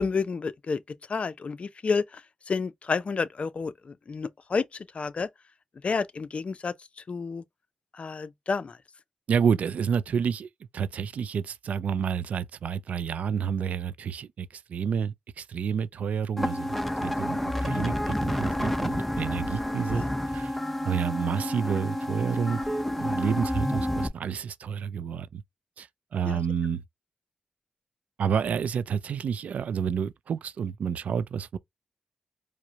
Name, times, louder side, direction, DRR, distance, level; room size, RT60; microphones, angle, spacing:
voice 1, 0.0-2.2 2.5-4.6 4.9-5.3 5.8-6.7 7.1-7.4 8.0-8.8 17.7-17.9 19.9-20.1 26.2-26.4, left 4 dB, 55° left, 0.5 m, -30 dB
voice 2, 9.3-10.5 10.7-20.0 20.3-20.5 20.8-22.6 22.9-25.4 25.8-25.9 26.1-26.8 28.2-31.6, right 7 dB, 80° right, 0.3 m, -29 dB
sound 1, 16.4-24.1, left 1 dB, 5° left, 0.7 m, -29 dB
4.7 x 2.1 x 2.8 m
supercardioid pair, 45°, 2 cm